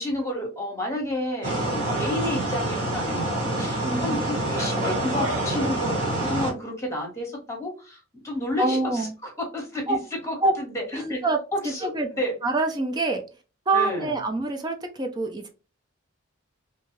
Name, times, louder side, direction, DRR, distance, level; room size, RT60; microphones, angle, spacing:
voice 1, 0.0-11.2 11.5-12.4 13.7-14.2, left 1 dB, 15° left, 0 dB, 1.1 m, -31 dB
sound 1, 1.4-6.5, right 1 dB, 35° right, 1.3 m, -26 dB
voice 2, 3.8-4.2 8.6-9.1 9.9-10.0 10.4-10.5 11.0-11.4 11.6-12.1 12.4-13.2 13.7-15.5, right 2 dB, 20° right, 4 dB, 0.4 m, -25 dB
2.7 x 2.3 x 3.0 m, 0.32 s
head